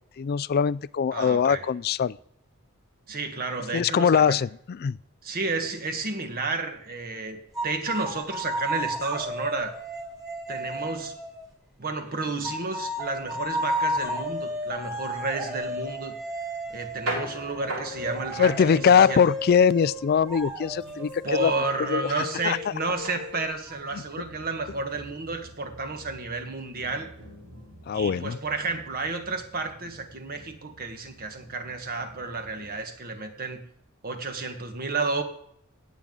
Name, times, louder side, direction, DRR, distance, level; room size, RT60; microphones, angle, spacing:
voice 1, 0.2-2.2 3.7-5.0 18.4-21.5 21.9-22.1 22.4-22.6 27.9-28.4, left 7 dB, 45° left, 20 dB, 0.3 m, -22 dB
voice 2, 1.1-1.6 3.1-4.4 5.2-9.7 10.5-11.2 11.8-16.1 16.7-19.2 21.2-27.1 27.9-33.6 34.0-35.2, right 3 dB, 45° right, 6 dB, 1.5 m, -31 dB
sound 1, 7.6-11.5 12.4-23.8, equal, 15° right, 3.3 m, -33 dB
sound 2, 16.7-32.8, right 1 dB, 75° right, 4.5 m, -43 dB
17.0 x 7.5 x 3.9 m, 0.70 s
head